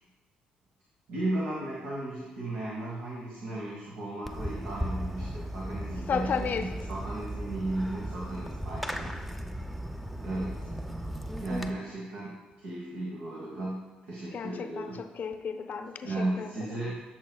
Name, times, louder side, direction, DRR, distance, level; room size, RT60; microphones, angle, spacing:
voice 1, 1.1-9.2 10.2-10.7 11.4-15.0 16.0-17.0, right 2 dB, 70° right, -5 dB, 1.5 m, -35 dB
Fireworks, 4.3-11.7, equal, 5° right, 0.7 m, -36 dB
voice 2, 6.1-6.7 14.3-16.5, left 6 dB, 55° left, 7 dB, 0.7 m, -33 dB
13.0 x 6.4 x 2.3 m, 1.2 s
hypercardioid pair, 50°, 4 cm